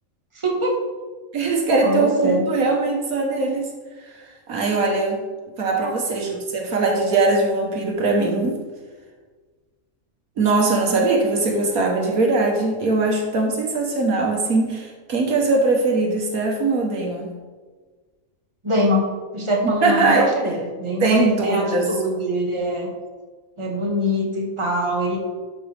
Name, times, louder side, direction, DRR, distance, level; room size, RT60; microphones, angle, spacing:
voice 1, 0.3-0.7 1.8-2.4 5.7-5.9 18.6-19.0 19.3-22.9 23.6-25.2, equal, 20° right, -2 dB, 1.6 m, -23 dB
voice 2, 1.3-3.7 4.5-5.2 5.6-8.6 10.4-17.3 19.6-20.3 21.0-21.9, right 3 dB, 80° right, 0 dB, 1.7 m, -21 dB
12.0 x 5.4 x 3.5 m, 1.4 s
omnidirectional pair, 1.5 m